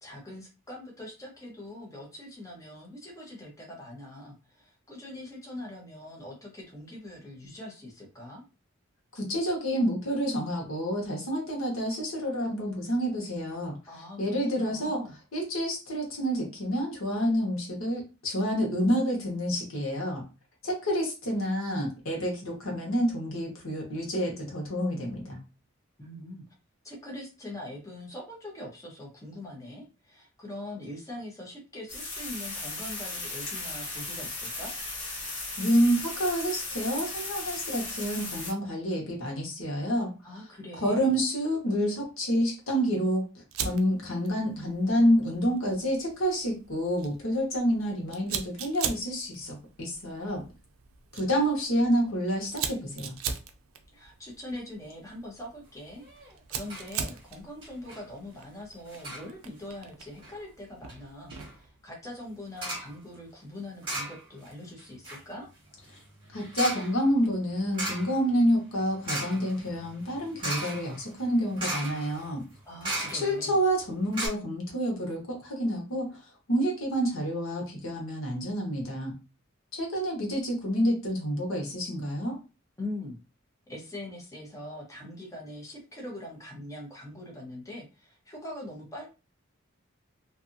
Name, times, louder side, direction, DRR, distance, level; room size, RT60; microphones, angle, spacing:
voice 1, 0.0-8.4 13.9-14.2 14.5-15.2 26.0-26.4 26.8-34.8 40.2-41.1 53.9-65.5 72.6-73.6 82.8-83.2 83.7-89.1, left 1 dB, 15° left, -1 dB, 0.7 m, -42 dB
voice 2, 9.1-13.8 14.2-15.0 15.3-20.2 20.6-25.4 35.6-40.1 40.7-50.4 51.1-53.1 66.3-72.5 73.1-76.2 76.5-79.2 79.7-82.4, equal, 90° left, -1 dB, 1.1 m, -28 dB
sound 1, 31.9-38.5, left 2 dB, 65° left, 1.3 m, -36 dB
Fire, 43.5-61.7, right 7 dB, 90° right, 0.4 m, -41 dB
sound 2, 56.0-56.3 56.7-56.9 57.2-57.3 57.6-58.0 58.9-59.3 60.0-60.3 60.9-61.0 61.3-61.5 62.6-62.9 63.8-64.5 64.8-73.5 73.8-73.9 74.1-74.3, right 1 dB, 25° right, 1.2 m, -37 dB
2.6 x 2.4 x 2.6 m, 0.30 s
head